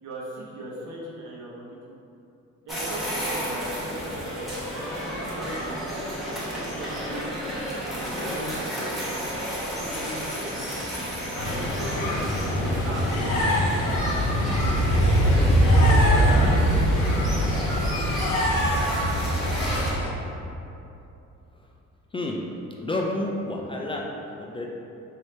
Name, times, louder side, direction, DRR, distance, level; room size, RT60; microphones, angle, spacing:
voice 1, 0.0-1.8 2.6-4.1 5.0-6.2 6.5-7.4 8.0-9.0 9.6-10.7 11.4-12.2 12.7-13.1 15.8-17.3, right 1 dB, 75° right, -5 dB, 1.0 m, -37 dB
sound 1, 2.7-19.9, equal, ahead, 1.0 m, -32 dB
sound 2, 11.4-20.1, equal, 80° left, 0.7 m, -22 dB
voice 2, 22.8-24.1 24.4-24.7, left 2 dB, 20° left, -1 dB, 0.3 m, -29 dB
3.2 x 2.7 x 4.3 m, 2.8 s
cardioid pair, 90°, 30 cm